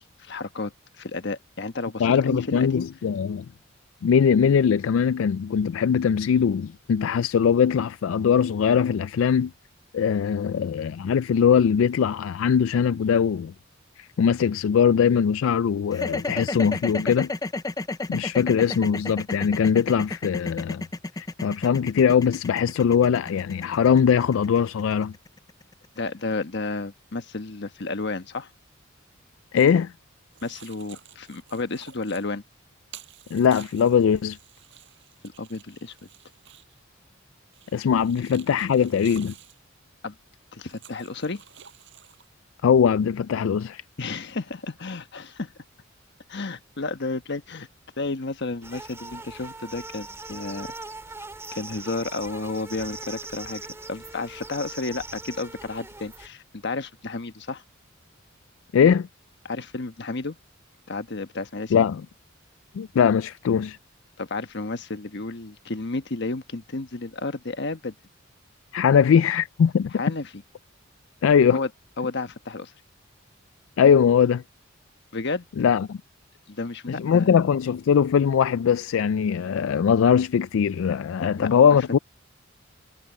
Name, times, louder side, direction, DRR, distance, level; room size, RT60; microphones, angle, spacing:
voice 1, 0.0-2.9 26.0-28.5 30.4-32.4 35.2-35.9 40.0-40.1 40.5-41.4 44.0-45.5 46.3-47.7 48.0-50.7 51.5-53.6 53.9-57.6 59.4-60.4 60.9-61.9 64.2-67.9 69.9-70.4 71.5-71.7 72.0-72.7 75.1-75.5 76.5-77.4 81.3-81.5, left 3 dB, 60° left, 1.3 m, -32 dB
voice 2, 2.0-3.5 4.0-9.5 9.9-13.5 14.0-17.3 18.1-20.8 21.2-25.1 29.5-29.9 33.3-34.4 37.7-39.3 42.6-43.8 58.7-59.1 61.7-62.0 62.7-63.8 68.7-69.9 71.2-71.6 73.8-74.4 75.6-76.0 76.9-82.0, left 7 dB, 75° left, 0.3 m, -21 dB
sound 1, 15.9-26.1, left 2 dB, 20° left, 0.5 m, -32 dB
sound 2, 29.6-29.8 30.3-32.3 32.9-36.8 37.5-39.6 40.6-42.3, right 10 dB, 65° right, 5.4 m, -50 dB
sound 3, 48.6-56.3, right 3 dB, 15° right, 2.0 m, -40 dB
head